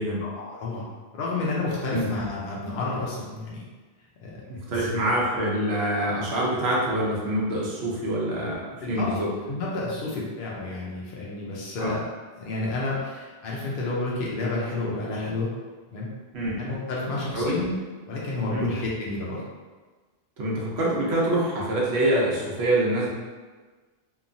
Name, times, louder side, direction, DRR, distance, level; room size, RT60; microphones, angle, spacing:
voice 1, 0.2-3.6 4.2-4.4 4.7-4.9 8.8-12.0 12.4-15.5 15.9-16.1 16.6-17.8 18.1-19.4, left 2 dB, 65° left, -5 dB, 0.7 m, -30 dB
voice 2, 4.5-9.3 11.8-11.9 16.3-16.6 17.3-17.6 18.5-18.7 20.4-23.1, right 1 dB, 85° right, -5 dB, 0.9 m, -25 dB
2.9 x 2.3 x 2.5 m, 1.4 s
omnidirectional pair, 1.0 m